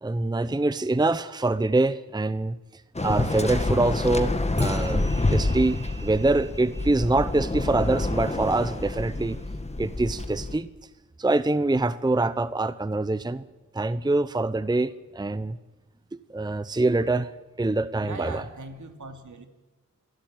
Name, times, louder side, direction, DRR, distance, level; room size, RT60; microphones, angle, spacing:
voice 1, 0.0-2.6 3.0-9.4 9.8-10.7 11.2-13.4 13.7-15.6 16.1-17.3 17.6-18.4, right 2 dB, 15° right, 15 dB, 0.7 m, -25 dB
Waves surf, 2.9-10.6, left 2 dB, 20° left, 1.8 m, -28 dB
sound 1, 4.6-9.4, right 4 dB, 35° right, 2.9 m, -48 dB
voice 2, 18.0-19.5, right 3 dB, 65° right, 6 dB, 2.7 m, -39 dB
27.5 x 12.0 x 9.2 m, 1.1 s
cardioid pair, 60°, 32 cm